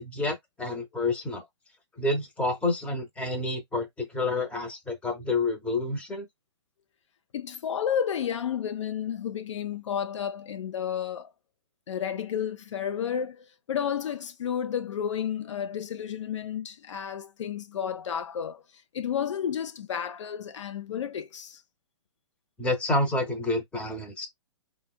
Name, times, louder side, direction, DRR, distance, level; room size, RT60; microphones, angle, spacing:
voice 1, 0.0-1.4 2.0-6.3 22.6-24.3, left 2 dB, 10° left, 0.7 m, -29 dB
voice 2, 7.3-11.3 11.9-18.6 18.9-21.6, left 8 dB, 80° left, 0.4 m, -31 dB
3.4 x 2.0 x 2.3 m
hypercardioid pair, 135°, 15 cm